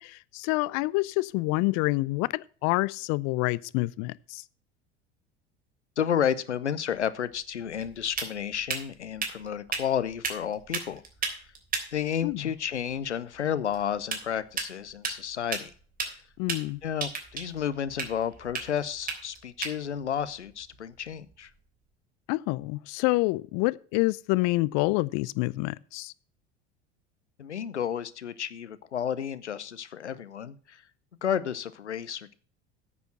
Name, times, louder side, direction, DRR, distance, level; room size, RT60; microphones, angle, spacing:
voice 1, 0.0-4.4 12.2-12.4 16.4-16.8 22.3-26.1, left 22 dB, 50° left, 0.6 m, -27 dB
voice 2, 6.0-11.0 11.3-11.4 11.9-15.7 16.1-16.2 16.8-21.5 27.4-30.8 31.2-32.3, left 9 dB, 90° left, 0.7 m, -31 dB
sound 1, 6.9-21.6, right 4 dB, 25° right, 3.3 m, -38 dB
9.7 x 7.0 x 6.0 m
figure-of-eight pair, 70°, 34 cm